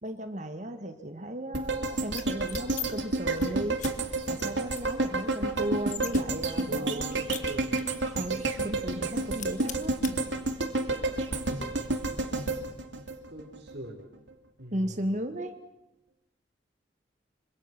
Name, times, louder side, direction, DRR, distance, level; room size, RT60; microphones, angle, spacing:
voice 1, 0.0-3.8 4.3-7.3 8.1-10.0 14.7-15.5, right 1 dB, 40° right, 8 dB, 1.7 m, -35 dB
sound 1, 1.5-13.7 14.1-14.2, right 2 dB, 75° right, 2.7 m, -30 dB
sound 2, 2.2-2.9 3.2-3.5 3.8-3.9 4.4-4.5 4.7-6.2 6.6-8.0 8.4-8.5 8.8-9.1 9.3-10.1, left 10 dB, 40° left, 1.7 m, -40 dB
voice 2, 6.7-7.8 13.3-14.1 14.6-15.3, right 1 dB, 60° right, -3 dB, 3.7 m, -41 dB
26.0 x 26.0 x 6.0 m, 0.88 s
head